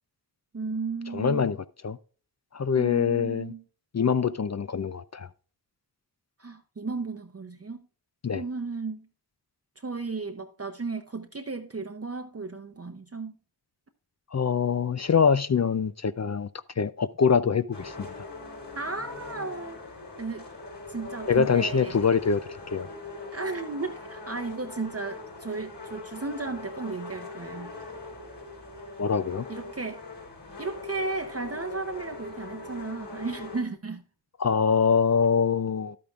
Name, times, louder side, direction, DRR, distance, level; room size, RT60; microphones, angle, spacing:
voice 1, 0.5-1.5 2.8-3.6 6.4-7.8 8.3-9.1 9.8-13.3 18.8-19.8 20.2-20.5 20.9-22.0 23.3-27.7 29.5-30.0 30.6-34.0, right 3 dB, 35° right, 0.7 m, -34 dB
voice 2, 1.1-2.0 2.5-3.5 3.9-5.3 8.2-8.4 14.3-16.5 16.8-18.1 21.3-22.4 22.7-22.9 29.0-29.4 34.4-36.0, left 6 dB, 40° left, 0.4 m, -24 dB
sound 1, 17.7-33.6, left 2 dB, 65° left, 5.0 m, -41 dB
11.5 x 8.5 x 2.4 m
wide cardioid pair, 45°, 44 cm